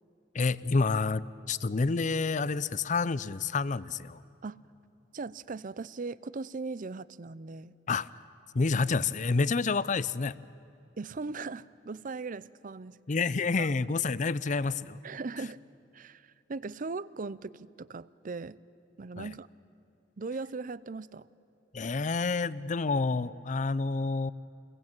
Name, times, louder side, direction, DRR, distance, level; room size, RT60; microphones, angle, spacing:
voice 1, 0.3-4.2 7.9-8.1 8.5-10.3 13.1-15.0 19.2-19.3 21.7-24.3, left 4 dB, 45° left, 18 dB, 0.6 m, -28 dB
voice 2, 5.1-7.7 11.0-13.0 13.6-13.7 15.0-15.6 15.9-18.6 19.0-19.5 20.2-21.3, right 3 dB, 50° right, 18 dB, 0.6 m, -39 dB
28.5 x 22.0 x 8.9 m, 2.7 s
head